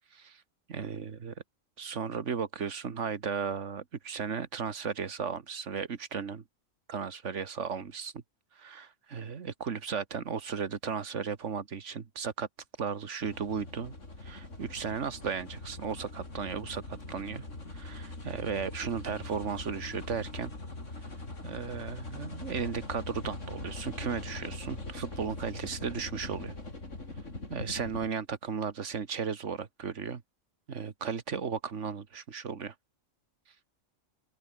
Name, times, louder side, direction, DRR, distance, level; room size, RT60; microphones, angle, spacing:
voice 1, 0.1-0.4 0.7-1.3 1.8-6.4 6.9-8.2 8.6-12.5 12.8-13.9 14.2-20.5 21.4-26.5 27.5-30.2 30.7-32.7, right 6 dB, 60° right, 1.8 m, -35 dB
sound 1, 13.2-28.1, left 2 dB, 65° left, 4.8 m, -42 dB
open air
omnidirectional pair, 1.4 m